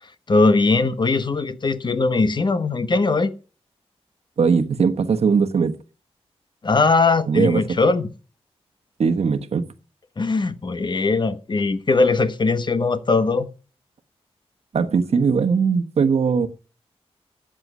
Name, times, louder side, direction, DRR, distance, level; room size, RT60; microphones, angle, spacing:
voice 1, 0.3-3.3 6.6-8.1 10.2-13.5, left 3 dB, 45° left, 1.2 m, -20 dB
voice 2, 4.4-5.7 7.3-7.6 9.0-9.7 14.7-16.5, right 5 dB, 70° right, 1.2 m, -19 dB
13.5 x 8.9 x 6.1 m
wide cardioid pair, 95°, 11 cm